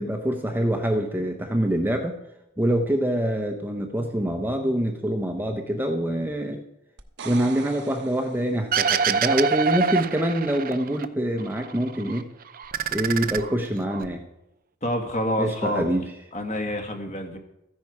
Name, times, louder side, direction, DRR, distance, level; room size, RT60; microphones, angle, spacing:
voice 1, 0.0-2.2 2.6-6.6 7.2-12.3 12.9-14.2 15.4-16.0, equal, 10° right, 3 dB, 0.9 m, -25 dB
sound 1, 7.0-8.9 12.6-12.7, right 5 dB, 60° right, 1.0 m, -41 dB
sound 2, 8.7-11.1 11.4-12.2 12.5-14.1, right 6 dB, 45° right, 0.6 m, -25 dB
voice 2, 14.8-15.9 16.3-17.4, equal, 35° left, 4 dB, 1.8 m, -27 dB
14.5 x 10.5 x 4.7 m, 0.86 s
head